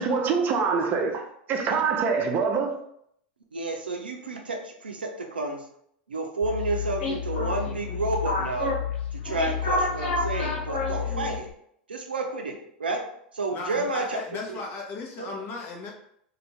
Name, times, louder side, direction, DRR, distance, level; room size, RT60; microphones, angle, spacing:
voice 1, 0.0-2.8, right 5 dB, 40° right, 0.6 m, -25 dB
voice 2, 3.5-5.7 6.1-8.7 9.1-11.5 11.9-14.2 14.5-14.6 15.2-15.3, right 2 dB, 90° right, 0.5 m, -31 dB
sound 1, 6.4-11.5, left 4 dB, 65° left, 1.3 m, -29 dB
voice 3, 13.5-15.9, left 3 dB, 45° left, 0.8 m, -36 dB
2.6 x 2.5 x 3.1 m
hypercardioid pair, 90°, 5 cm